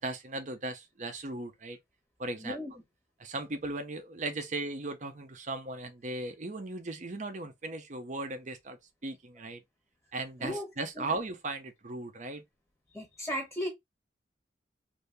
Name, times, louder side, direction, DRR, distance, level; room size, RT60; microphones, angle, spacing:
voice 1, 0.0-1.8 2.2-2.6 3.2-8.8 9.0-9.6 10.1-12.4, right 2 dB, 45° right, 0.7 m, -37 dB
voice 2, 2.4-2.7 10.4-10.7 11.0-11.1 12.9-13.7, equal, ahead, 0.9 m, -35 dB
2.7 x 2.7 x 3.3 m
head